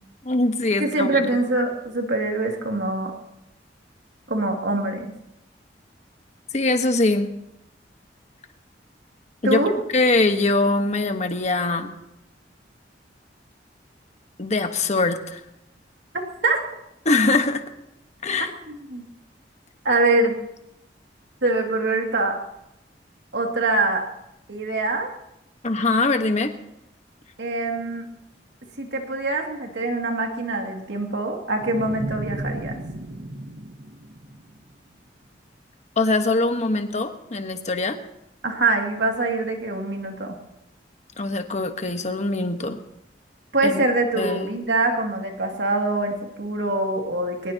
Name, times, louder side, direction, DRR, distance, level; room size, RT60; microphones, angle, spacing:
voice 1, 0.2-1.3 6.5-7.3 9.4-9.6 9.9-11.9 14.4-15.4 17.0-17.6 18.2-18.5 25.6-26.5 36.0-38.0 41.2-42.8 43.6-43.8 44.2-44.5, left 2 dB, 40° left, 6 dB, 1.3 m, -22 dB
voice 2, 0.8-3.1 4.3-5.1 9.4-9.7 16.4-16.6 18.6-19.0 19.8-20.4 21.4-22.4 23.3-24.0 24.5-25.1 27.4-28.1 28.8-32.8 38.4-40.4 43.5-47.5, right 2 dB, 80° right, 2 dB, 2.4 m, -24 dB
sound 1, 31.6-34.9, right 1 dB, 55° right, 1.1 m, -34 dB
22.5 x 19.0 x 2.9 m, 0.83 s
head